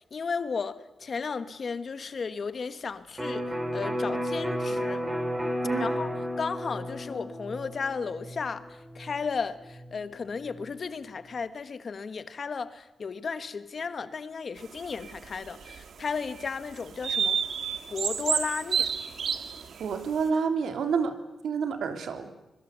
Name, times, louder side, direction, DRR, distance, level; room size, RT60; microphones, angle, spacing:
voice 1, 0.1-5.0 5.8-6.1 6.4-17.4 17.9-18.9, left 5 dB, 45° left, 1.3 m, -34 dB
Electric guitar, 3.2-10.8, equal, 15° right, 5.2 m, -33 dB
sound 1, 14.8-15.8 16.4-16.5 17.0-19.9, right 7 dB, 70° right, 1.7 m, -29 dB
voice 2, 19.8-21.1 21.4-22.3, right 5 dB, 90° right, 2.9 m, -28 dB
25.5 x 22.5 x 8.1 m
wide cardioid pair, 155°, 0 cm